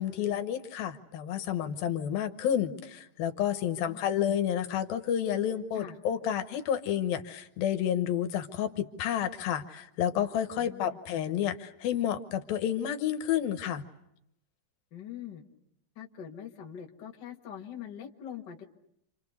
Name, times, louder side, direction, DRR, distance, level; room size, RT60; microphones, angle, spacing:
voice 1, 0.0-13.9, left 10 dB, 75° left, 8 dB, 2.9 m, -30 dB
voice 2, 3.7-4.0 5.7-6.0 10.6-11.0 14.9-15.4 15.9-18.6, left 9 dB, 45° left, 1 dB, 1.5 m, -43 dB
29.0 x 27.5 x 6.5 m, 0.80 s
omnidirectional pair, 4.4 m